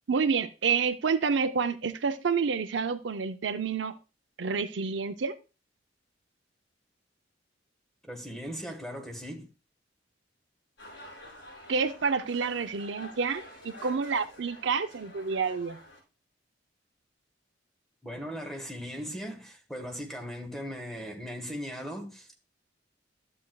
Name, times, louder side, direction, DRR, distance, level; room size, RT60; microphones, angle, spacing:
voice 1, 0.1-4.0 4.4-5.3 11.7-15.8, right 5 dB, 75° right, 0.6 m, -28 dB
voice 2, 8.0-9.5 18.0-22.3, equal, ahead, 1.3 m, -38 dB
sound 1, 10.8-16.0, left 1 dB, 75° left, 5.7 m, -48 dB
11.5 x 7.6 x 2.3 m
head